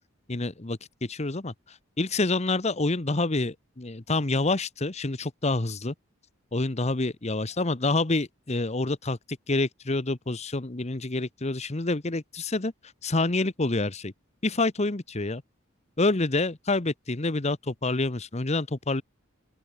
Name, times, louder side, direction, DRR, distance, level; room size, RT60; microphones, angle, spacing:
voice 1, 0.3-1.5 2.0-5.9 6.5-12.7 13.0-14.1 14.4-15.4 16.0-19.0, left 2 dB, 35° left, 1.1 m, -27 dB
open air
head